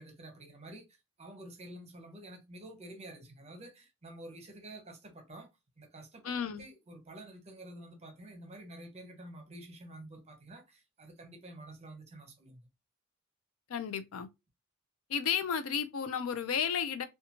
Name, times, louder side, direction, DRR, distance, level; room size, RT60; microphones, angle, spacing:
voice 1, 0.0-5.5 5.8-12.7, right 1 dB, 30° right, 0.8 m, -49 dB
voice 2, 6.2-6.6 13.7-14.3 15.1-17.0, left 7 dB, 90° left, 0.5 m, -33 dB
2.8 x 2.3 x 2.6 m
head